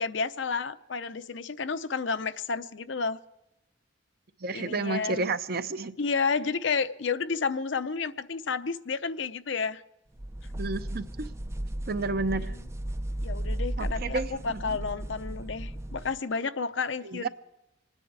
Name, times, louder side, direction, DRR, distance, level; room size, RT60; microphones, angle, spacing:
voice 1, 0.0-3.2 4.5-5.3 6.0-9.8 12.3-12.6 13.2-17.3, left 5 dB, 65° left, 0.7 m, -31 dB
voice 2, 4.4-5.9 10.5-11.1 11.9-12.5 13.8-14.6 17.0-17.3, right 3 dB, 50° right, 0.7 m, -31 dB
sound 1, 10.2-16.2, right 1 dB, 15° right, 0.4 m, -35 dB
27.0 x 9.8 x 4.8 m
head